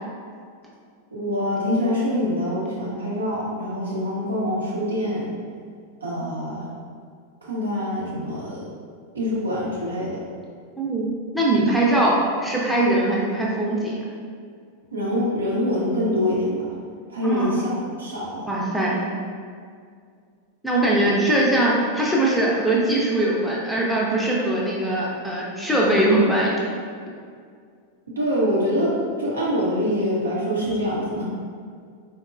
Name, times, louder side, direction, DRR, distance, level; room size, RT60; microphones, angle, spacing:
voice 1, 1.1-5.3 6.0-6.7 7.4-8.7 9.1-10.2 11.6-11.8 14.9-16.6 17.1-17.7 18.0-18.5 20.9-21.1 28.2-31.2, left 1 dB, 75° right, -6 dB, 0.7 m, -25 dB
voice 2, 10.8-12.1 12.4-14.0 17.2-17.6 18.5-19.1 20.6-26.5, right 1 dB, ahead, -5 dB, 0.5 m, -21 dB
3.9 x 2.2 x 2.4 m, 2.1 s
figure-of-eight pair, 90°, 0 cm